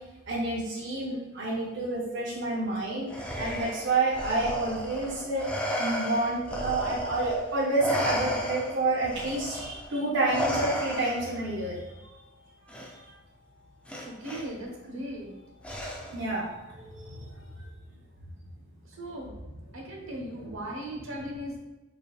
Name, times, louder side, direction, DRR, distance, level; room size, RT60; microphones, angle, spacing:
voice 1, 0.3-5.5 5.8-11.8 16.1-16.5 16.7-17.2 20.3-20.5, right 2 dB, 65° right, -5 dB, 0.6 m, -29 dB
Respiratory sounds, 3.1-7.4 7.8-11.4 12.7-12.9 13.9-14.4 15.6-16.3, equal, 5° left, 0.3 m, -33 dB
voice 2, 14.0-15.3 19.0-19.3 19.7-21.6, right 1 dB, 90° right, -1 dB, 1.0 m, -37 dB
4.9 x 2.7 x 2.3 m, 1.1 s
head